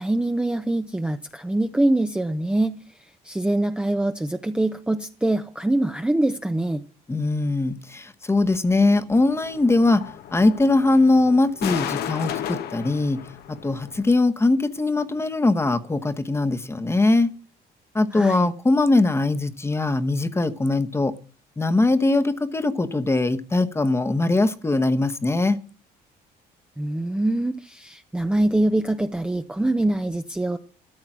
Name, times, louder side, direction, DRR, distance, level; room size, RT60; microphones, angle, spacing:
voice 1, 0.0-2.7 3.2-6.8 18.1-18.5 26.8-30.6, right 1 dB, 5° right, 0.6 m, -24 dB
voice 2, 7.1-10.0 10.3-13.2 13.5-17.3 17.9-21.1 21.6-25.6, left 2 dB, 15° left, 1.0 m, -21 dB
sound 1, 9.1-14.1, left 10 dB, 70° left, 1.1 m, -34 dB
13.5 x 8.4 x 6.1 m
cardioid pair, 110°, 17 cm